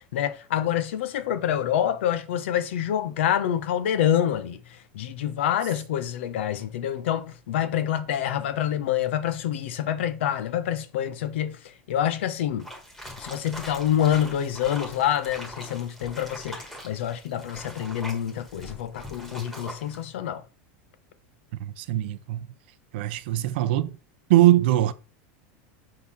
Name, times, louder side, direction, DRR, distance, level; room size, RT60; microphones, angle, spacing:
voice 1, 0.1-12.7 13.2-20.4, left 10 dB, 85° left, 1.0 m, -27 dB
sound 1, 12.6-20.1, equal, 5° left, 1.5 m, -42 dB
voice 2, 21.6-22.5 22.9-23.9 24.3-24.9, right 14 dB, 60° right, 0.6 m, -21 dB
6.6 x 3.9 x 5.7 m
supercardioid pair, 170°, 6 cm